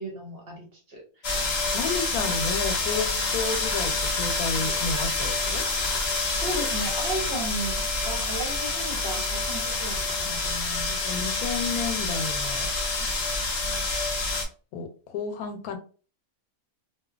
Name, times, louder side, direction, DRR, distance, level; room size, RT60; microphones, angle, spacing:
voice 1, 0.0-1.4 2.2-2.3 6.4-11.0, right 1 dB, 50° right, 0 dB, 0.8 m, -35 dB
sound 1, 1.2-14.4, left 3 dB, 55° left, 0.8 m, -27 dB
voice 2, 1.7-5.6 10.9-12.7 14.7-15.8, left 4 dB, 85° left, 7 dB, 1.0 m, -32 dB
2.8 x 2.2 x 2.3 m, 0.38 s
omnidirectional pair, 1.5 m